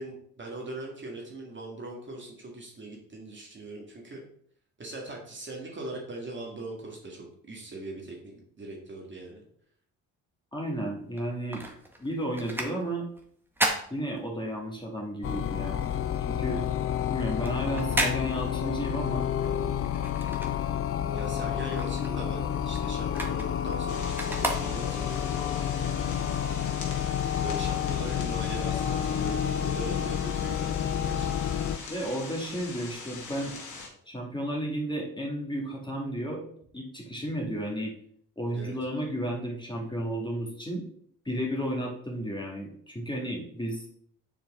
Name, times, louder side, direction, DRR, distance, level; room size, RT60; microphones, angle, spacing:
voice 1, 0.0-4.2 4.8-9.4 21.1-25.6 27.4-30.7 31.0-32.0 38.5-38.8, right 2 dB, 35° right, -1 dB, 1.9 m, -41 dB
voice 2, 10.5-11.6 12.0-13.0 13.9-15.8 16.3-16.7 17.1-19.3 31.9-33.5 34.1-36.4 36.7-37.9 38.4-40.8 41.3-43.9, equal, 15° left, -1 dB, 2.2 m, -33 dB
sound 1, 11.1-14.8 15.1-21.1 21.4-25.2 25.7-25.8, right 1 dB, 5° right, 1.5 m, -34 dB
sound 2, 15.2-31.8, left 9 dB, 40° left, 0.5 m, -30 dB
sound 3, 23.9-33.9, left 4 dB, 60° left, 2.1 m, -42 dB
7.3 x 4.4 x 3.7 m, 0.63 s
supercardioid pair, 55°, 34 cm